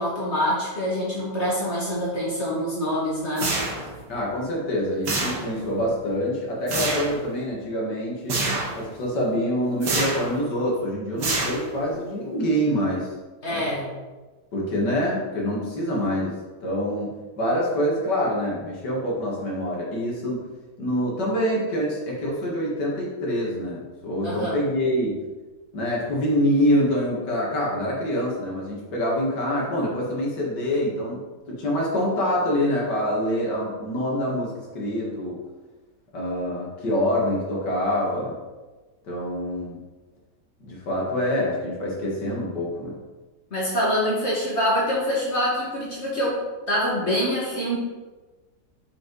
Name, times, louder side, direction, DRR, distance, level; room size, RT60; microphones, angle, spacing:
voice 1, 0.0-3.5 13.4-13.9 24.2-24.5 43.5-46.4 46.7-47.8, equal, 40° left, -6 dB, 2.1 m, -25 dB
sound 1, 3.4-4.0 5.0-5.7 6.7-7.2 8.3-8.8 9.8-10.3 11.2-11.9, right 2 dB, 80° right, 2.1 m, -26 dB
voice 2, 4.1-8.5 8.8-13.1 13.5-13.7 14.5-20.5 20.8-25.3 25.7-35.4 36.1-38.4 39.0-39.8 40.6-43.0, equal, 85° left, -4 dB, 2.5 m, -26 dB
6.9 x 5.4 x 4.0 m, 1.2 s
omnidirectional pair, 1.8 m